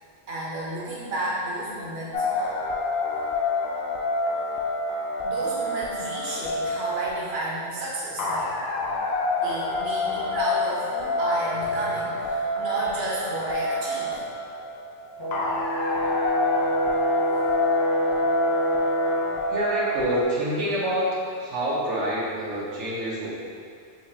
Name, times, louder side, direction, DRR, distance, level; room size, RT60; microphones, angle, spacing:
voice 1, 0.3-2.5 5.2-8.5 9.4-14.1, right 1 dB, 65° right, -7 dB, 1.1 m, -32 dB
sound 1, 2.1-20.2, left 2 dB, 65° left, 0.8 m, -28 dB
Brass instrument, 15.2-19.4, equal, 30° left, 0.5 m, -26 dB
voice 2, 19.5-21.1 21.3-23.3, equal, 85° right, -7 dB, 1.3 m, -27 dB
6.2 x 2.9 x 2.8 m, 2.2 s
omnidirectional pair, 1.2 m